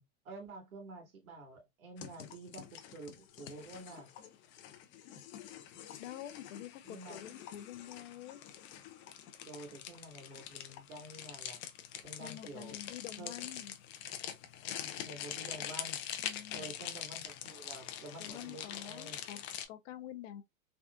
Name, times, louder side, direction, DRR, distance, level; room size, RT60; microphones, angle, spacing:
voice 1, 0.0-4.1 6.8-7.2 9.5-11.6 12.0-12.8 13.2-13.5 14.8-16.0 16.5-19.2, right 2 dB, 85° right, 1.8 m, -49 dB
sound 1, 2.0-19.7, left 10 dB, 30° left, 0.5 m, -45 dB
voice 2, 6.0-8.4 12.2-13.7 16.2-16.7 18.2-19.4 19.7-20.4, left 11 dB, 60° left, 0.7 m, -47 dB
3.5 x 2.4 x 2.4 m
hypercardioid pair, 125°, 41 cm